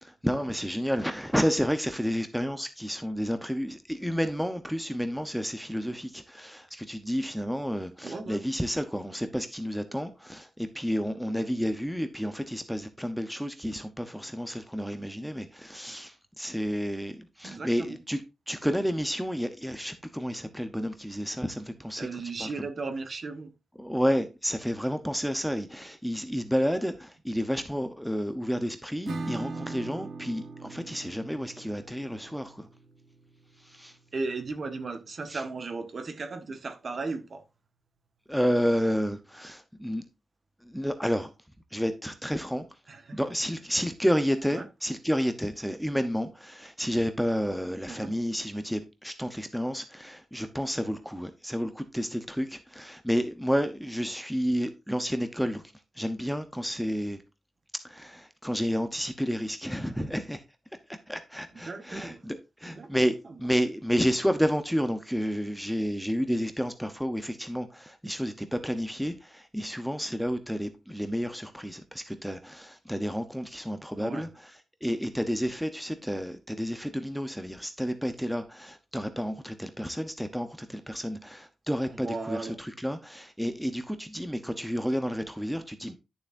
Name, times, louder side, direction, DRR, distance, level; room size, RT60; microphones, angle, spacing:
voice 1, 0.0-22.1 22.4-22.7 23.8-32.7 33.6-34.0 35.3-35.4 38.3-40.0 40.6-41.3 41.7-42.6 43.1-55.6 56.0-57.2 57.8-60.4 61.1-74.5 74.8-85.9, equal, ahead, 0.8 m, -30 dB
voice 2, 8.0-8.4 17.4-18.0 22.0-23.5 34.1-37.4 42.9-43.2 44.5-44.7 47.9-48.1 61.6-62.2 62.7-62.9 63.2-63.4 74.0-74.3 81.9-82.6, right 3 dB, 40° right, 1.3 m, -36 dB
Acoustic guitar / Strum, 29.1-34.5, right 3 dB, 65° right, 1.5 m, -41 dB
11.5 x 7.0 x 2.6 m
wide cardioid pair, 165°, 0 cm